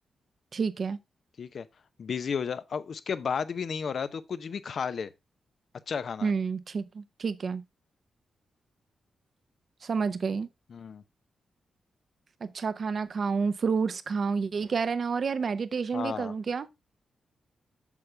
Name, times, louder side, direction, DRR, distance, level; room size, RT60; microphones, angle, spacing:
voice 1, 0.5-1.0 6.2-7.6 9.8-10.5 12.4-16.7, right 5 dB, 60° right, 0.9 m, -29 dB
voice 2, 2.0-5.1 5.9-6.3 10.7-11.0 15.9-16.3, left 6 dB, 65° left, 0.8 m, -33 dB
8.5 x 6.7 x 3.3 m
supercardioid pair, 45°, 0 cm